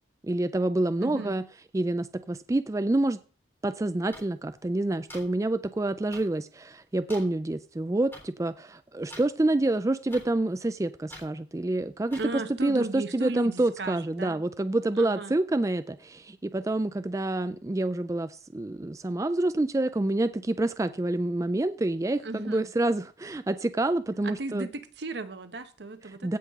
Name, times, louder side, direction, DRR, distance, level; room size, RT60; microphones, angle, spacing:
voice 1, 0.2-1.4 1.7-3.2 3.6-24.7 26.2-26.4, right 2 dB, 15° right, 0.3 m, -27 dB
voice 2, 1.0-1.3 12.1-14.4 15.0-15.3 22.2-22.7 24.2-26.4, right 2 dB, 70° right, 1.0 m, -36 dB
sound 1, 4.1-4.2 5.1-5.2 6.1-6.2 7.1-7.2 8.1-8.2 9.1-9.2 10.1-10.2 11.1-11.2 12.1-12.2, left 1 dB, 10° left, 3.7 m, -43 dB
16.0 x 5.6 x 3.6 m
head